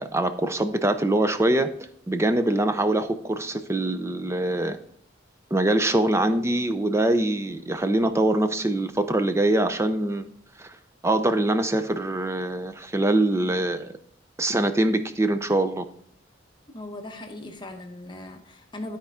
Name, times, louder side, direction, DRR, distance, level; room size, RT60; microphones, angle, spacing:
voice 1, 0.0-1.7 2.1-4.8 5.5-10.3 10.6-10.8 11.0-13.9 14.4-15.8, right 1 dB, 15° right, 0.5 m, -23 dB
voice 2, 16.7-19.0, left 1 dB, 25° left, 0.9 m, -38 dB
12.5 x 4.4 x 3.6 m
head